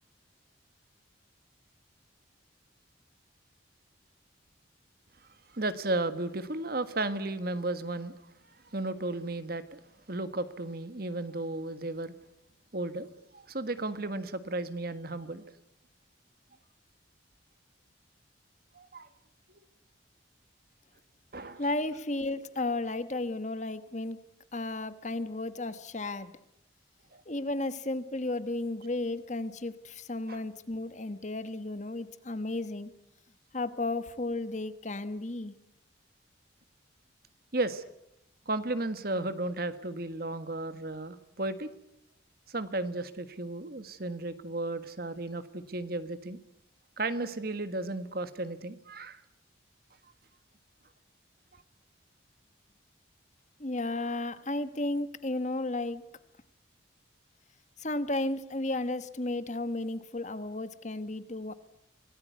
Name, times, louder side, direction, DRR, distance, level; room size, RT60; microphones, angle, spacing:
voice 1, 5.5-8.1 8.7-9.8 10.1-12.1 12.7-15.4 18.7-19.1 19.5-19.6 21.3-21.6 27.1-27.2 30.3-30.4 37.5-37.8 38.4-41.7 42.5-46.4 47.0-49.2, right 2 dB, 50° right, 12 dB, 1.6 m, -34 dB
voice 2, 21.6-24.2 24.5-26.3 27.3-32.9 33.5-35.6 53.6-56.0 57.8-61.5, left 2 dB, 40° left, 12 dB, 1.3 m, -33 dB
25.5 x 18.5 x 9.4 m, 0.81 s
head